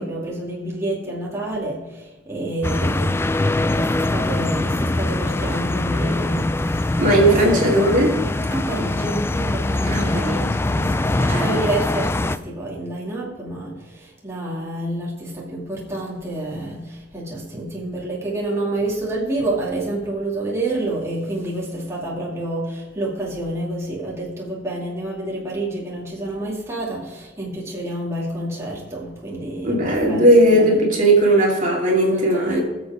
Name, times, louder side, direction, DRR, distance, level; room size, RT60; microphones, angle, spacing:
voice 1, 0.0-7.0 7.3-8.0 8.5-10.2 10.7-30.8 31.9-32.6, right 1 dB, 15° right, -6 dB, 2.4 m, -28 dB
sound 1, 2.6-12.4, left 2 dB, 15° left, 0.3 m, -22 dB
voice 2, 7.0-8.1 9.8-10.5 11.2-11.6 29.6-32.6, right 1 dB, 45° right, -2 dB, 2.6 m, -17 dB
21.0 x 7.2 x 3.6 m, 1.1 s
head